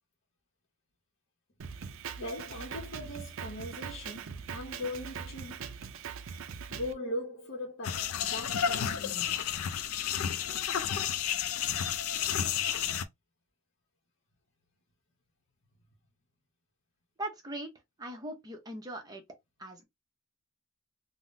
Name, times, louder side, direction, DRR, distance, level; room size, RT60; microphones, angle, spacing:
Drum kit, 1.6-6.9, right 6 dB, 65° right, 0.4 m, -41 dB
voice 1, 2.2-5.7 6.7-9.4, left 1 dB, 55° left, 0.8 m, -40 dB
sound 1, 7.8-13.1, left 9 dB, 85° left, 0.4 m, -31 dB
voice 2, 17.2-17.7 18.0-19.2 19.6-19.8, right 1 dB, 20° right, 0.7 m, -40 dB
3.5 x 2.1 x 2.6 m
head